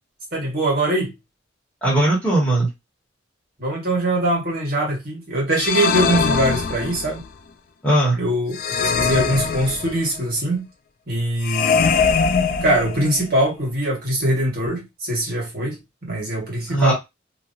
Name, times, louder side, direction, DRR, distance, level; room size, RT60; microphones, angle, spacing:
voice 1, 0.3-1.1 3.6-7.2 8.2-10.6 11.1-12.0 12.6-16.9, right 1 dB, 50° right, 1.5 m, -22 dB
voice 2, 1.8-2.7 7.8-8.2 16.7-16.9, right 1 dB, 5° left, 1.6 m, -18 dB
sound 1, 5.5-7.2 8.5-10.2 11.4-13.3, left 5 dB, 45° left, 0.4 m, -22 dB
3.0 x 2.7 x 2.6 m
head